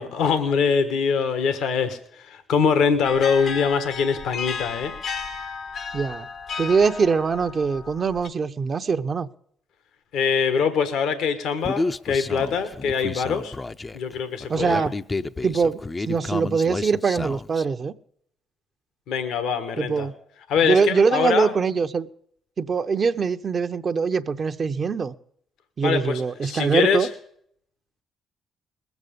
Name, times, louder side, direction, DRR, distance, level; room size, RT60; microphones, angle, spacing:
voice 1, 0.0-4.9 10.1-13.5 13.9-14.8 19.1-20.1 20.5-21.5 25.8-27.1, left 6 dB, 75° left, 10 dB, 1.3 m, -23 dB
sound 1, 3.0-8.3, left 5 dB, 60° left, 0.9 m, -34 dB
voice 2, 5.9-6.3 6.6-9.3 14.5-14.9 15.4-15.8 16.1-17.9 19.8-20.1 20.6-22.1 22.6-25.1 25.8-27.1, right 5 dB, 45° right, 9 dB, 0.8 m, -23 dB
Human voice, 11.6-17.6, left 3 dB, 30° left, 0.6 m, -31 dB
20.5 x 8.2 x 5.2 m, 0.67 s
supercardioid pair, 60°, 0 cm